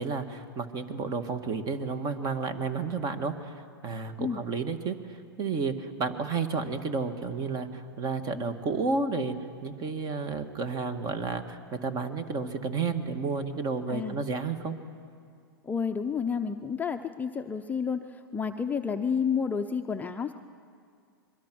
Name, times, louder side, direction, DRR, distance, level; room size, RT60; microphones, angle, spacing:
voice 1, 0.0-9.4 9.6-14.8, right 4 dB, 30° right, 9 dB, 1.8 m, -31 dB
voice 2, 15.6-20.3, left 6 dB, 15° left, 5 dB, 0.7 m, -30 dB
26.5 x 22.5 x 6.3 m, 2.2 s
hypercardioid pair, 115°, 13 cm